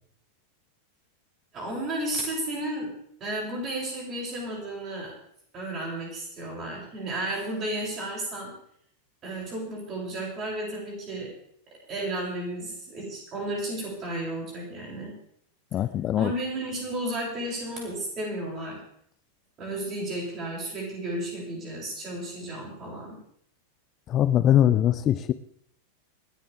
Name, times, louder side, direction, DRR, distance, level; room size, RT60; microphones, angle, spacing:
voice 1, 1.5-2.9 3.2-5.2 5.5-8.5 9.2-11.3 11.7-15.2 16.1-18.8 19.6-23.2, right 1 dB, 30° right, -2 dB, 7.6 m, -33 dB
voice 2, 15.7-16.3 24.1-25.3, left 11 dB, 30° left, 13 dB, 0.6 m, -22 dB
27.5 x 10.5 x 3.7 m, 0.66 s
figure-of-eight pair, 90°, 0 cm